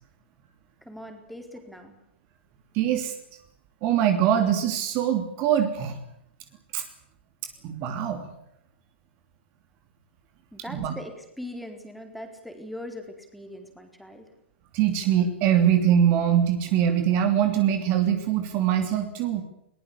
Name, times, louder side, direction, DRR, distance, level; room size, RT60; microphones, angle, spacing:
voice 1, 0.8-2.0 10.5-14.3, left 1 dB, ahead, 4 dB, 4.2 m, -41 dB
voice 2, 2.7-3.1 3.8-6.0 6.7-6.8 7.6-8.3 10.7-10.9 14.7-19.4, right 9 dB, 35° right, 7 dB, 3.1 m, -23 dB
22.0 x 20.5 x 8.7 m, 0.77 s
figure-of-eight pair, 110°, 6 cm